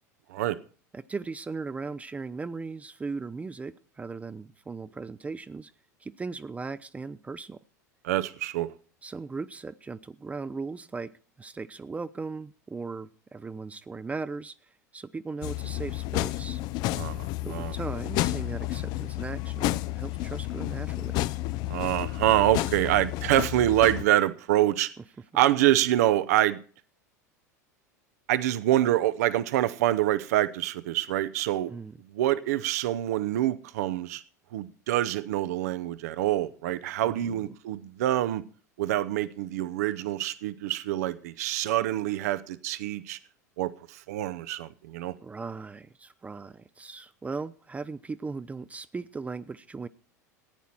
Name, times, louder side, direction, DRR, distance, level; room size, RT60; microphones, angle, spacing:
voice 1, 0.9-5.7 6.0-7.6 9.0-11.1 11.4-16.6 17.4-21.2 31.7-32.0 37.0-37.6 45.2-49.9, right 4 dB, 15° right, 0.5 m, -38 dB
voice 2, 8.0-8.7 16.9-17.7 21.7-24.9 25.3-26.6 28.3-31.7 32.1-34.2 34.5-38.4 38.8-43.2 43.6-45.1, right 14 dB, 65° right, 0.7 m, -26 dB
sound 1, 15.4-24.1, left 17 dB, 50° left, 0.5 m, -31 dB
14.5 x 9.4 x 4.4 m
hypercardioid pair, 80°, 9 cm